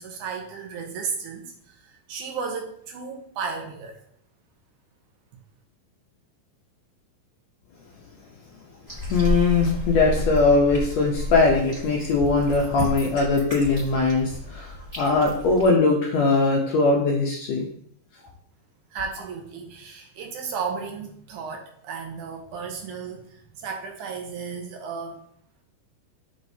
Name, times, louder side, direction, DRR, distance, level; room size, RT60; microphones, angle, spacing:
voice 1, 0.0-4.0 18.9-25.2, right 5 dB, 75° right, 3 dB, 2.2 m, -34 dB
sound 1, 8.9-15.7, left 1 dB, 15° right, 1.7 m, -31 dB
voice 2, 9.1-17.7, left 3 dB, 75° left, -1 dB, 1.6 m, -21 dB
6.3 x 6.3 x 2.7 m, 0.66 s
omnidirectional pair, 3.9 m